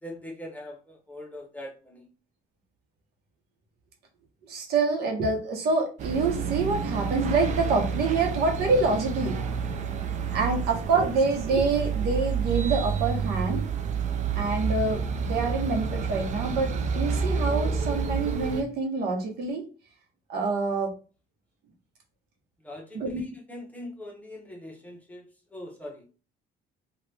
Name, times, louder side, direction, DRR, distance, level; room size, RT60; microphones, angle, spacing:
voice 1, 0.0-2.1 22.6-26.0, left 1 dB, 10° left, -1 dB, 1.0 m, -42 dB
voice 2, 4.5-9.4 10.3-13.6 14.3-19.7 20.3-20.9 22.9-23.2, right 3 dB, 70° right, 2 dB, 1.0 m, -26 dB
sound 1, 6.0-18.6, right 5 dB, 45° right, 0.5 m, -29 dB
2.9 x 2.5 x 3.3 m, 0.34 s
cardioid pair, 110°, 17 cm